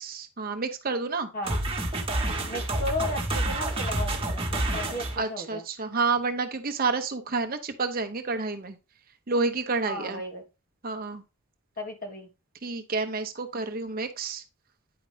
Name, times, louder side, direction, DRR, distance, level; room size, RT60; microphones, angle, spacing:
voice 1, 0.0-1.3 5.2-8.8 9.3-10.2 10.8-11.2 12.6-14.4, right 4 dB, 40° right, 8 dB, 0.7 m, -29 dB
sound 1, 1.4-5.2, right 1 dB, 25° right, 1.4 m, -28 dB
voice 2, 2.5-5.6 9.8-10.4 11.8-12.3, left 1 dB, 40° left, 3 dB, 1.5 m, -34 dB
9.5 x 5.0 x 3.3 m, 0.28 s
head